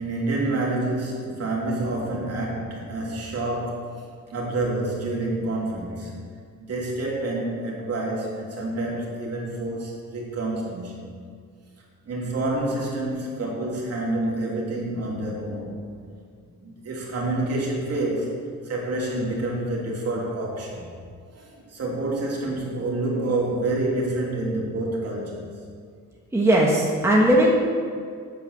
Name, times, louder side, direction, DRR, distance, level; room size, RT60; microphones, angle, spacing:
voice 1, 0.0-3.9 4.3-6.1 6.6-11.0 12.1-15.8 16.6-20.9 21.3-25.5, right 2 dB, 50° right, -3 dB, 3.0 m, -28 dB
voice 2, 26.3-27.6, right 1 dB, 10° right, -3 dB, 1.4 m, -18 dB
8.5 x 8.1 x 8.0 m, 2.1 s
cardioid pair, 130°, 31 cm